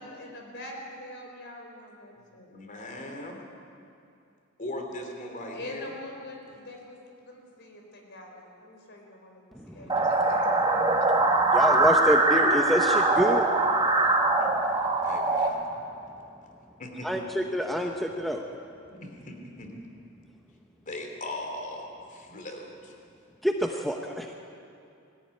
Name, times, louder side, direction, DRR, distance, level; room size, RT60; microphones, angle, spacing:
voice 1, 0.0-2.5 5.5-10.9, left 1 dB, 55° left, 1 dB, 4.7 m, -44 dB
voice 2, 2.5-3.4 4.6-5.9 14.4-14.5 15.0-15.6 16.8-17.1 18.9-19.7 20.8-22.9, left 1 dB, 40° left, 2 dB, 3.2 m, -39 dB
voice 3, 9.6-10.1 10.9-13.5 17.0-18.4 23.4-24.3, equal, ahead, 2 dB, 1.0 m, -27 dB
sound 1, 9.9-15.5, right 2 dB, 20° right, 1.9 m, -23 dB
21.0 x 14.5 x 9.7 m, 2.6 s
head